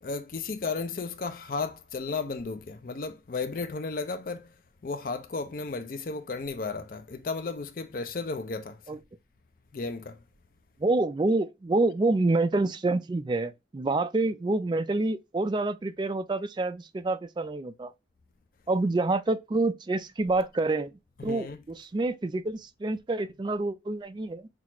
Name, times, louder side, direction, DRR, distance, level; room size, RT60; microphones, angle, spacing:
voice 1, 0.0-4.5 4.8-9.0 9.7-10.2 21.2-21.6, left 4 dB, 50° left, 0.4 m, -34 dB
voice 2, 10.8-17.9 18.7-20.9 21.2-24.5, right 2 dB, 25° right, 0.3 m, -27 dB
5.9 x 2.4 x 2.9 m
head